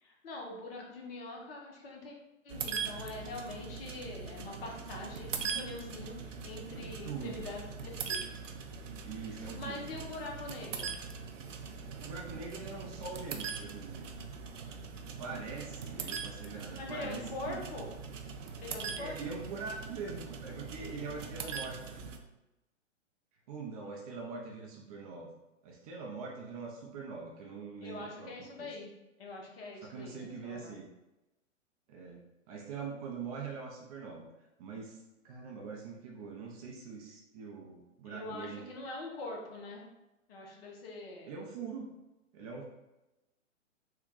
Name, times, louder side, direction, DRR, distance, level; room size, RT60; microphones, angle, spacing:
voice 1, 0.0-2.1 2.4-8.3 9.6-10.9 16.8-18.0 18.6-19.4 27.8-28.9 29.2-30.7 38.0-39.8 40.3-41.3, left 2 dB, 50° left, 0 dB, 1.0 m, -43 dB
sound 1, 2.5-22.2, right 5 dB, 80° right, 0.6 m, -41 dB
voice 2, 6.7-7.5 9.0-10.0 12.0-14.1 15.2-17.6 18.9-22.0 23.5-25.3 25.6-28.7 29.8-30.9 31.9-32.2 32.5-34.3 34.6-38.7 41.3-41.9 42.3-42.6, right 4 dB, 30° right, -1 dB, 0.5 m, -43 dB
3.6 x 2.2 x 3.7 m, 0.98 s
hypercardioid pair, 120°, 38 cm